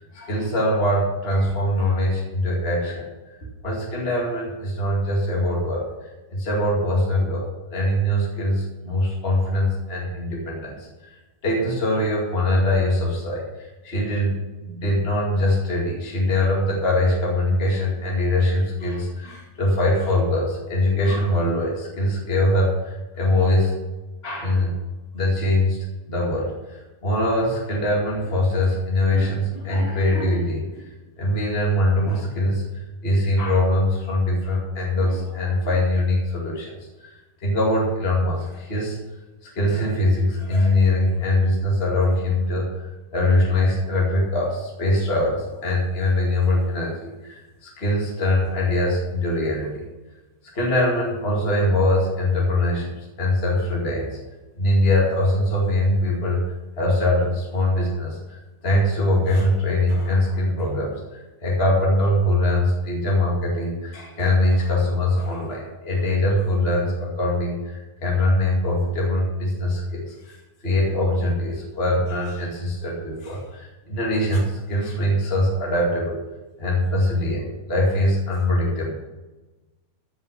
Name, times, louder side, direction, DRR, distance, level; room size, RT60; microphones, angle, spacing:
voice 1, 0.0-3.0 3.6-7.4 7.7-14.3 14.6-23.7 24.2-24.8 25.1-25.8 26.1-30.9 31.2-36.7 37.0-39.0 39.4-49.9 50.5-54.2 54.6-56.4 56.8-76.2 76.6-78.9, left 1 dB, 25° left, -3 dB, 1.4 m, -22 dB
14.5 x 5.6 x 5.8 m, 1.2 s
omnidirectional pair, 4.5 m